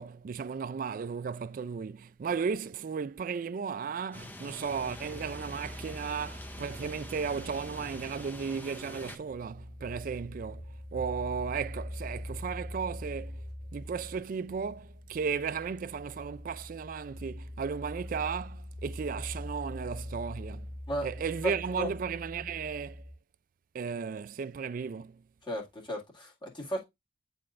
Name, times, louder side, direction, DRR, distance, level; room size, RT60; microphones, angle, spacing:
voice 1, 0.0-10.7 10.9-13.4 13.7-20.7 21.0-23.0 23.7-25.2, right 6 dB, 45° right, 0.3 m, -35 dB
sound 1, 4.1-9.2, left 1 dB, 10° left, 0.6 m, -45 dB
sound 2, 4.7-23.1, left 1 dB, 80° left, 1.9 m, -43 dB
voice 2, 21.4-21.9 25.4-26.8, equal, 25° left, 2.0 m, -35 dB
9.5 x 4.3 x 2.5 m
head